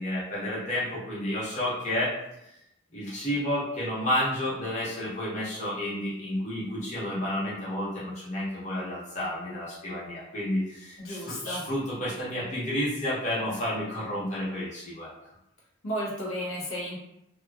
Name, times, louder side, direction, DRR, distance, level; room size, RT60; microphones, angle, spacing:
voice 1, 0.0-2.1 2.9-15.1, left 1 dB, 35° left, -9 dB, 1.0 m, -31 dB
voice 2, 11.0-11.6 15.8-17.0, equal, 75° left, -4 dB, 0.8 m, -33 dB
2.8 x 2.3 x 2.2 m, 0.83 s
head